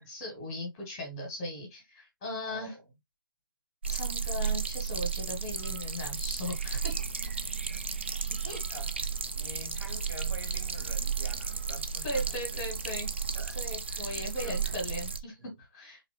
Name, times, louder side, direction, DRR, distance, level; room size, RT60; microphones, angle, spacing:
voice 1, 0.1-2.7 3.9-6.9 8.4-8.6 12.0-13.1 13.5-16.0, left 1 dB, 10° left, 0.9 m, -38 dB
voice 2, 2.5-2.8 7.7-7.9 8.3-9.0 9.3-12.6 13.3-13.6 13.9-14.6 15.4-15.5, right 1 dB, 80° right, 1.6 m, -47 dB
sound 1, 3.8-15.2, right 6 dB, 30° right, 0.3 m, -33 dB
3.7 x 3.0 x 3.2 m
hypercardioid pair, 175°, 12 cm